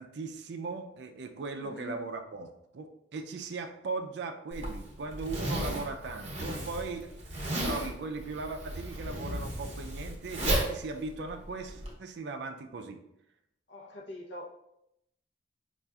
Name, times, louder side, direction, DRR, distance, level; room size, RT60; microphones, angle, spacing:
voice 1, 0.0-7.1 7.6-13.0, right 3 dB, 60° right, 6 dB, 0.4 m, -38 dB
voice 2, 1.5-2.0 13.7-14.5, equal, 65° left, -1 dB, 0.7 m, -43 dB
Zipper (clothing), 4.5-11.9, right 1 dB, 35° right, 0.7 m, -34 dB
5.4 x 2.4 x 2.3 m, 0.82 s
head